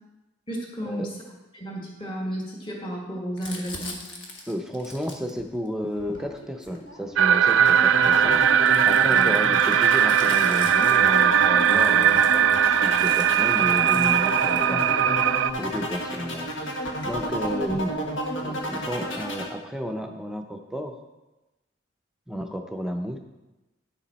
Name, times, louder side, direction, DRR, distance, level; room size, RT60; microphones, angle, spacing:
voice 1, 0.5-1.1 1.5-4.0 9.1-9.3 17.9-18.0, equal, 25° left, -2 dB, 1.7 m, -33 dB
Crumpling crinkling, 3.4-7.4 8.1-15.2 16.0-16.1 16.3-17.9, left 2 dB, 65° left, 1.5 m, -44 dB
voice 2, 4.5-8.4 8.8-12.4 12.8-14.8 15.6-16.5 17.0-18.0 18.4-21.0 22.3-23.2, equal, 5° right, 4 dB, 0.6 m, -32 dB
sound 1, 7.2-15.5, right 9 dB, 80° right, 0.3 m, -19 dB
sound 2, 7.5-19.5, equal, 80° left, 1.5 m, -30 dB
9.9 x 7.1 x 4.2 m, 1.0 s
head